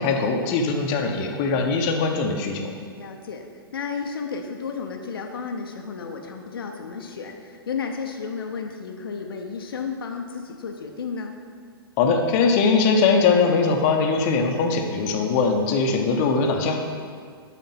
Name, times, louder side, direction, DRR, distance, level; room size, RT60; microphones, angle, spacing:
voice 1, 0.0-2.7 12.0-16.8, left 4 dB, 35° left, 3 dB, 1.0 m, -21 dB
voice 2, 3.0-3.5 3.7-11.3, left 5 dB, 65° left, 3 dB, 0.8 m, -32 dB
9.0 x 4.2 x 5.8 m, 2.1 s
figure-of-eight pair, 110°, 13 cm